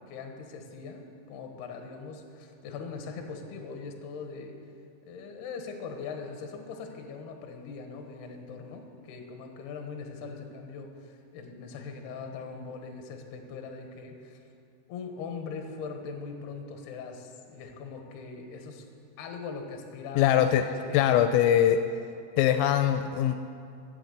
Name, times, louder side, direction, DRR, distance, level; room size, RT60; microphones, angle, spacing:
voice 1, 0.1-4.6 5.1-14.4 14.9-18.9 19.2-21.2, left 5 dB, 70° left, 4 dB, 2.8 m, -41 dB
voice 2, 20.2-20.6 20.9-21.8 22.4-23.4, left 10 dB, 85° left, 8 dB, 3.1 m, -22 dB
15.0 x 7.6 x 7.9 m, 2.4 s
omnidirectional pair, 5.9 m